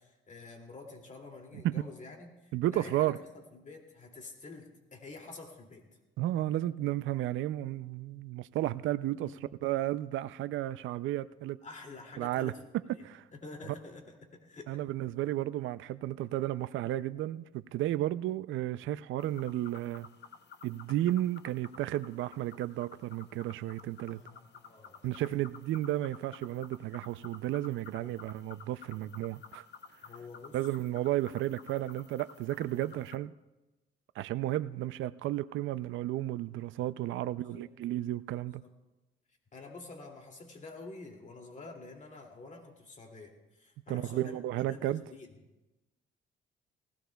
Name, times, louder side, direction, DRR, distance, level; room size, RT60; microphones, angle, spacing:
voice 1, 0.0-5.8 9.2-9.5 11.6-12.6 12.9-14.8 24.1-25.4 28.0-28.2 30.0-30.6 32.7-33.0 37.4-37.7 38.6-38.7 39.5-45.3, left 3 dB, 40° left, 2 dB, 2.5 m, -49 dB
voice 2, 2.5-3.2 6.2-11.6 12.2-12.5 13.0-13.2 14.7-20.1 20.6-24.2 25.0-29.6 30.5-33.3 34.2-38.6 43.9-45.0, right 14 dB, 80° right, 15 dB, 0.4 m, -33 dB
sound 1, 19.2-33.2, left 6 dB, 60° left, 0.8 m, -53 dB
19.5 x 16.5 x 2.3 m, 1.0 s
cardioid pair, 90°, 20 cm